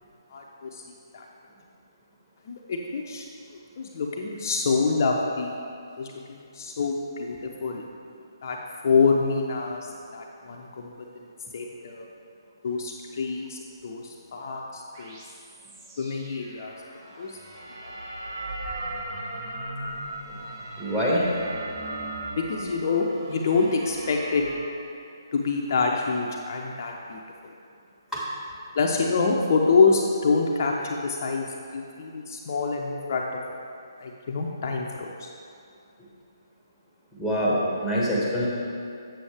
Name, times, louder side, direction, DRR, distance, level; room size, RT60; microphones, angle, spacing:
voice 1, 0.3-0.8 1.1-1.2 2.5-3.3 3.8-5.6 6.0-7.3 7.6-7.8 8.4-8.6 8.8-11.2 11.5-12.0 12.6-15.2 16.0-16.7 17.2-17.4 17.8-17.9 22.4-24.4 25.3-27.2 28.7-31.5 31.7-33.3 34.0-35.3, left 4 dB, 45° left, 0 dB, 0.6 m, -26 dB
sound 1, 14.9-24.6, right 1 dB, 40° right, 1.2 m, -38 dB
voice 2, 20.8-21.3 28.1-28.2 37.2-38.5, equal, ahead, -6 dB, 1.5 m, -24 dB
7.5 x 6.9 x 3.4 m, 2.5 s
figure-of-eight pair, 145°, 2 cm